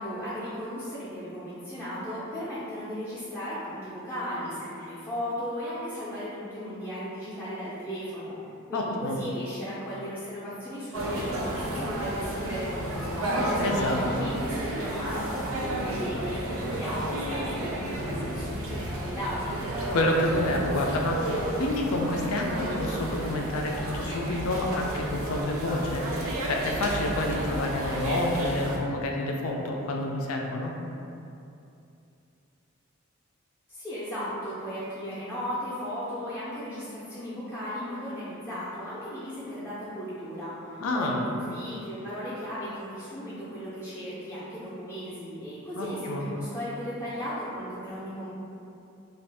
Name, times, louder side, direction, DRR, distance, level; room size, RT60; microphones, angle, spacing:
voice 1, 0.0-8.4 8.7-19.6 33.7-48.3, equal, 10° left, -13 dB, 0.5 m, -36 dB
voice 2, 8.7-9.2 13.6-14.3 19.9-30.8 40.8-41.2 45.8-46.3, left 1 dB, 85° left, 1 dB, 0.4 m, -29 dB
sound 1, 10.9-28.8, right 1 dB, 70° right, 0.4 m, -32 dB
2.5 x 2.4 x 3.3 m, 2.7 s
head